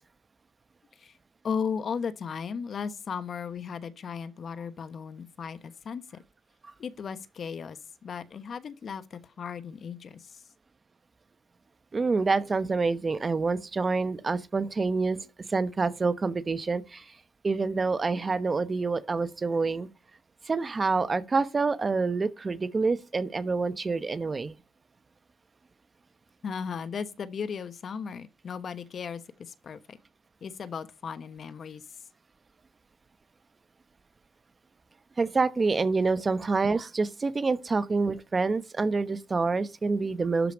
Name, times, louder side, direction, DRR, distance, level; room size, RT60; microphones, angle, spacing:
voice 1, 1.4-6.2 6.8-10.4 26.4-30.0 30.4-31.9, left 6 dB, 50° left, 1.0 m, -36 dB
voice 2, 11.9-17.0 17.4-19.9 20.5-24.5 35.2-40.5, right 4 dB, 30° right, 0.9 m, -27 dB
12.0 x 5.1 x 5.0 m
cardioid pair, 90°, 0 cm